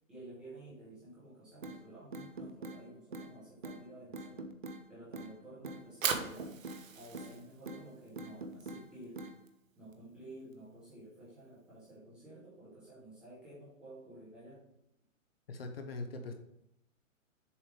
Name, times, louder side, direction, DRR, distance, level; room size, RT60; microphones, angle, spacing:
voice 1, 0.1-4.5 4.9-6.5 6.9-9.2 9.8-14.6, right 1 dB, ahead, -10 dB, 0.8 m, -52 dB
sound 1, 1.6-1.8 2.1-2.8 3.1-3.3 3.6-3.8 4.1-4.8 5.1-5.3 5.6-5.8 6.1-6.8 7.1-7.3 7.7-7.8 8.2-8.8 9.2-9.4, right 2 dB, 40° right, 0.4 m, -43 dB
Fire, 5.7-11.9, right 6 dB, 70° right, 1.1 m, -42 dB
voice 2, 15.5-16.3, left 3 dB, 45° left, 5 dB, 0.8 m, -41 dB
7.0 x 3.4 x 4.7 m, 0.82 s
hypercardioid pair, 170°, 41 cm